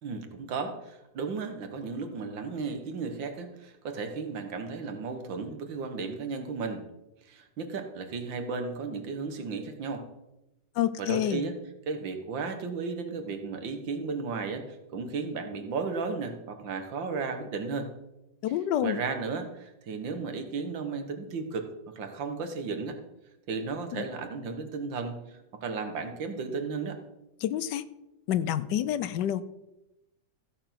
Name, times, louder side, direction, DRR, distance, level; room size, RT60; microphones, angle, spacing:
voice 1, 0.0-6.8 7.3-10.1 11.0-11.6 11.9-17.9 18.8-21.7 22.0-23.0 23.5-25.2 25.6-27.0, right 4 dB, 90° right, 6 dB, 2.1 m, -34 dB
voice 2, 10.8-11.4 18.4-19.0 23.9-24.0 27.4-27.8 28.3-29.4, left 11 dB, 75° left, 15 dB, 1.2 m, -28 dB
15.0 x 6.9 x 5.9 m, 0.94 s
omnidirectional pair, 2.0 m